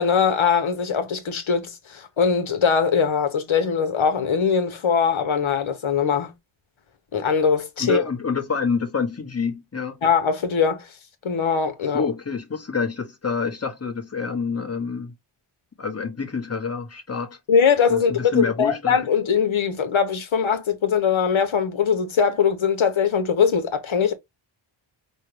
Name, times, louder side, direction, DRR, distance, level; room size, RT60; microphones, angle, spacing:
voice 1, 0.0-6.3 7.1-8.0 10.0-10.9 11.2-12.1 17.5-24.1, left 6 dB, 75° left, 1.1 m, -21 dB
voice 2, 7.8-10.0 11.9-15.1 15.8-17.4 17.9-19.0, left 5 dB, 30° left, 1.1 m, -27 dB
5.4 x 2.2 x 3.2 m
wide cardioid pair, 80°, 49 cm